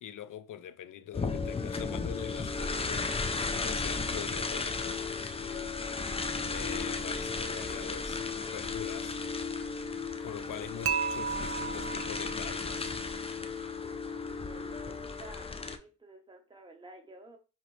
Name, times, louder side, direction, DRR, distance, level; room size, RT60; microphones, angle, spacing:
voice 1, 0.0-3.1 3.5-5.0 6.2-8.2 8.5-9.2 10.2-12.9, left 10 dB, 65° left, 0.5 m, -43 dB
sound 1, 1.1-15.8, left 4 dB, 20° left, 0.4 m, -35 dB
Dishes pots and pans / Chink clink, 10.9-13.0, right 7 dB, 45° right, 0.4 m, -34 dB
voice 2, 14.4-17.4, right 2 dB, 15° right, 0.9 m, -52 dB
4.9 x 2.9 x 3.1 m
cardioid pair, 75°, 33 cm